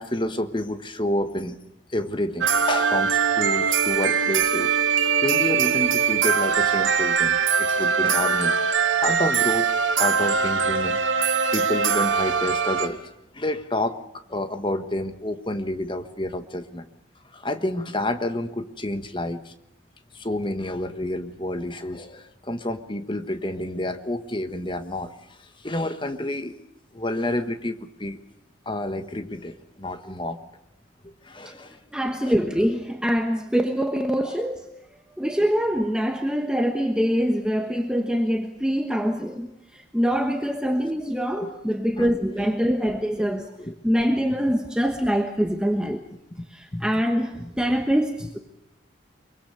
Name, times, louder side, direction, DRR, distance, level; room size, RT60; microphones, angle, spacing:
voice 1, 0.0-1.6 1.9-4.7 5.2-8.6 9.0-9.7 10.0-11.0 11.5-16.9 17.3-19.5 20.1-25.1 25.4-26.6 26.9-28.2 28.6-30.4 31.0-31.8 32.2-32.4 34.2-34.4 41.4-41.6 42.0-42.2 43.6-43.7 46.7-46.9 47.4-47.5, left 1 dB, 25° left, 9 dB, 1.4 m, -29 dB
sound 1, 2.4-12.9, right 6 dB, 80° right, 1.6 m, -22 dB
voice 2, 31.9-34.6 35.2-43.5 43.8-46.0 46.5-48.4, equal, 5° right, 4 dB, 1.2 m, -24 dB
24.0 x 23.5 x 6.8 m, 0.85 s
head